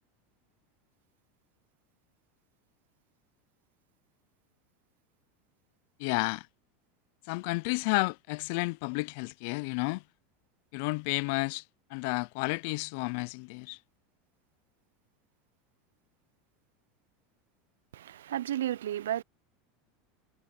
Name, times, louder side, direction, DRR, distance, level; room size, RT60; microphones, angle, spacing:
voice 1, 6.0-6.5 7.2-10.0 10.7-11.6 11.9-13.8, left 29 dB, 65° left, 0.4 m, -31 dB
voice 2, 17.9-19.2, right 12 dB, 85° right, 0.5 m, -32 dB
hypercardioid pair, 95°, 0 cm